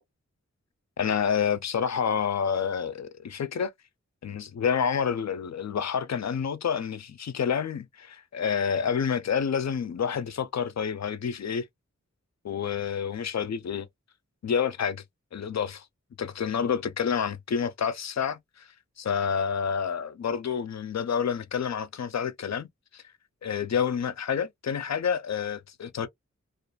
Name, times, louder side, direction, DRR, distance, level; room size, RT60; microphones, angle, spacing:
voice 1, 1.0-3.7 4.2-11.7 12.4-13.9 14.4-15.0 15.3-15.8 16.2-18.7 19.0-22.7 22.9-23.0 23.4-26.1, left 7 dB, 65° left, 0.5 m, -28 dB
2.4 x 2.4 x 2.3 m
wide cardioid pair, 70°, 30 cm